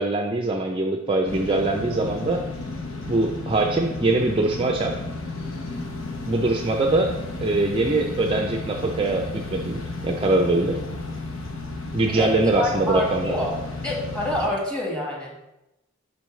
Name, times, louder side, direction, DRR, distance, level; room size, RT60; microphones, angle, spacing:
voice 1, 0.0-2.4 3.1-5.0 6.3-7.1 7.4-10.8 11.9-13.3, right 2 dB, 25° right, 2 dB, 0.5 m, -23 dB
sound 1, 1.3-14.5, left 2 dB, 90° left, 0.8 m, -33 dB
voice 2, 12.0-13.6 13.8-15.4, left 1 dB, 5° left, -2 dB, 1.6 m, -27 dB
10.0 x 4.1 x 3.1 m, 0.92 s
head